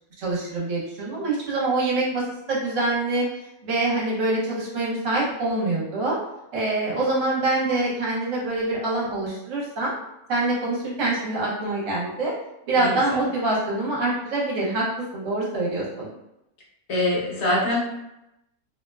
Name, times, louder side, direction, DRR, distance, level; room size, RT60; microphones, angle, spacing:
voice 1, 0.2-3.3 3.6-6.2 6.5-9.9 10.3-12.3 12.7-14.9 15.1-16.1, right 2 dB, 60° right, -5 dB, 1.1 m, -25 dB
voice 2, 12.8-13.2 16.9-17.8, left 1 dB, 55° left, -4 dB, 0.9 m, -24 dB
2.7 x 2.1 x 2.2 m, 0.88 s
omnidirectional pair, 1.7 m